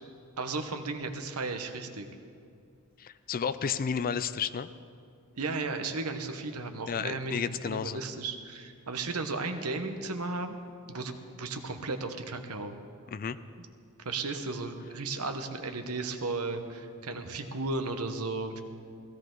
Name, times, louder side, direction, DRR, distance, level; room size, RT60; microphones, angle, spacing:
voice 1, 0.4-2.1 5.4-10.6 10.9-12.8 13.6-13.7 14.0-18.6, right 3 dB, 75° right, 7 dB, 1.1 m, -35 dB
voice 2, 3.0-4.7 6.9-8.0 13.1-13.4, left 6 dB, 40° left, 14 dB, 0.4 m, -32 dB
16.5 x 16.0 x 3.9 m, 2.4 s
head